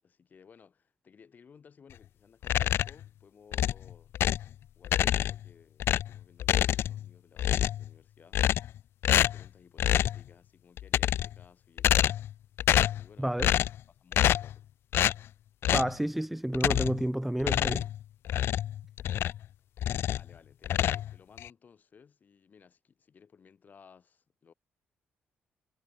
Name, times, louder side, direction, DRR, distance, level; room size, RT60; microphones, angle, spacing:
voice 1, 0.0-4.2 4.7-8.4 9.1-12.1 12.7-13.4 13.9-14.7 20.1-24.5, left 6 dB, 45° left, 6.8 m, -58 dB
sound 1, 2.4-3.0 3.5-4.5 4.8-5.5 5.8-7.1 7.4-7.9 8.3-8.8 9.0-9.5 9.8-10.2 10.8-11.4 11.8-12.3 12.6-13.0 13.4-13.8 14.1-14.5 14.9-15.2 15.6-16.0 16.5-17.0 17.4-19.5 19.8-20.3 20.6-21.5, left 11 dB, 75° left, 0.3 m, -27 dB
voice 2, 13.2-13.5 15.7-17.9, right 1 dB, 5° right, 0.4 m, -30 dB
cardioid pair, 110°, 4 cm